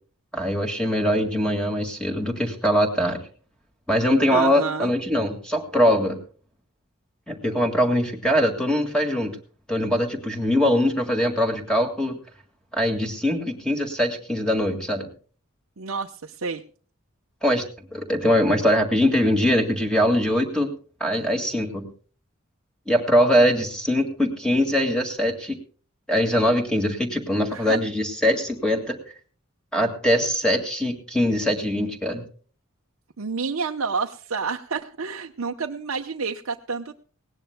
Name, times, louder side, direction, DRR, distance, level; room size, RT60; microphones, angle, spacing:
voice 1, 0.3-3.2 3.9-6.2 7.3-9.3 9.7-12.2 12.7-15.1 17.4-17.6 17.9-20.7 21.0-21.9 22.9-25.6 26.1-29.0 29.7-32.2, equal, 5° left, 3 dB, 1.9 m, -22 dB
voice 2, 4.3-4.9 15.8-16.6 27.5-27.8 33.2-36.9, right 5 dB, 75° right, 3 dB, 0.8 m, -29 dB
19.5 x 17.5 x 2.2 m, 0.41 s
head